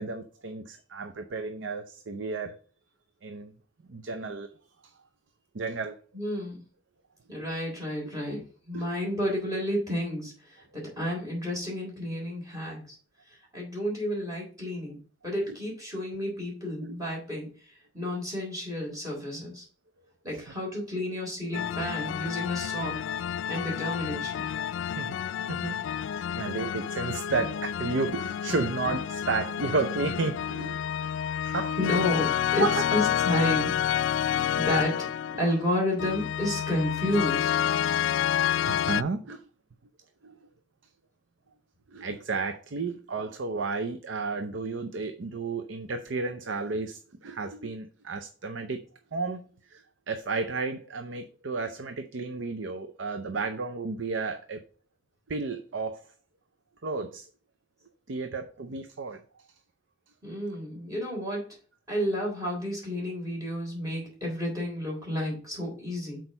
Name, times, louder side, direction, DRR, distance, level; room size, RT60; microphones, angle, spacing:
voice 1, 0.0-2.6 3.2-3.5 3.9-4.5 4.8-4.9 5.5-6.0 7.3-7.5 8.7-8.9 15.5-15.6 16.8-16.9 24.9-25.9 26.2-31.2 31.4-31.8 32.6-32.8 38.5-39.4 40.2-40.4 41.9-48.8 49.1-54.6 55.3-56.1 56.8-57.3 58.1-59.2, right 4 dB, 85° right, 0.6 m, -32 dB
voice 2, 6.1-6.6 7.3-13.0 13.5-15.0 15.2-19.6 20.2-23.0 23.4-24.4 31.8-32.6 32.9-33.7 34.2-35.1 35.4-37.5 60.2-61.4 61.9-66.2, left 1 dB, 20° right, 3.7 m, -31 dB
sound 1, 21.5-39.0, left 9 dB, 85° left, 0.3 m, -29 dB
6.2 x 4.6 x 5.3 m
head